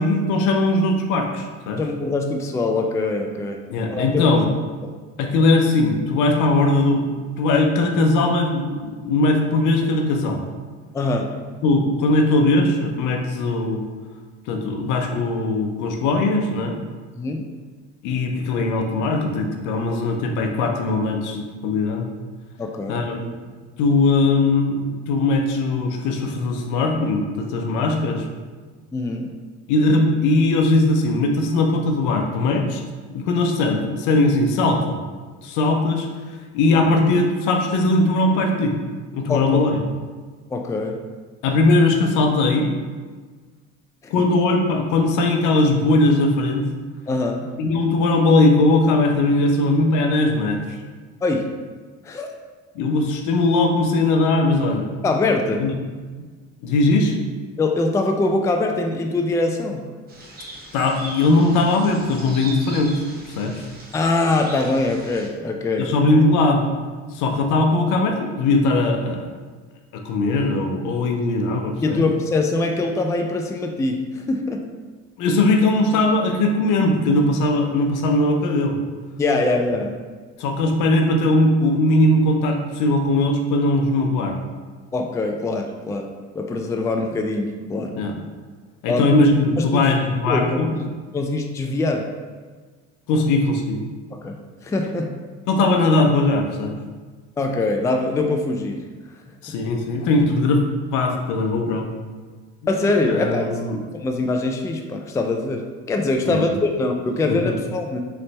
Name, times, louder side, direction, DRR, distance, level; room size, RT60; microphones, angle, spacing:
voice 1, 0.0-1.8 3.7-4.5 5.2-7.1 7.4-10.4 11.6-13.8 14.5-16.8 18.0-22.1 22.9-23.2 23.8-28.2 29.7-32.8 33.1-35.0 35.4-36.1 36.5-38.8 39.1-39.7 41.4-42.7 44.1-46.7 47.6-50.6 52.8-54.9 55.6-55.7 56.6-57.1 60.7-63.0 63.4-63.6 65.8-66.7 67.1-69.3 70.0-72.0 75.2-78.8 80.4-84.4 87.9-88.2 88.8-90.7 93.1-93.8 95.5-96.7 99.4-100.6 100.9-101.9 103.1-103.8 106.2-106.5 107.2-107.6, left 2 dB, 70° left, 3 dB, 0.7 m, -19 dB
voice 2, 1.8-3.6 3.9-4.4 4.8-4.9 10.9-11.3 17.1-17.4 22.6-23.0 28.9-29.3 39.3-39.6 40.5-41.0 44.0-44.1 47.1-47.5 51.2-51.5 52.0-52.3 55.0-55.6 57.6-59.8 63.9-65.9 71.8-74.7 79.2-80.0 84.9-88.0 88.9-89.1 89.6-89.9 90.3-90.8 91.1-92.1 94.1-95.1 97.4-98.9 99.5-99.6 102.7-103.6 103.9-108.0, left 2 dB, 10° left, 3 dB, 0.3 m, -23 dB
sound 1, 60.1-65.3, right 2 dB, 30° right, 1.2 m, -39 dB
3.8 x 3.3 x 3.2 m, 1.4 s
supercardioid pair, 80°, 32 cm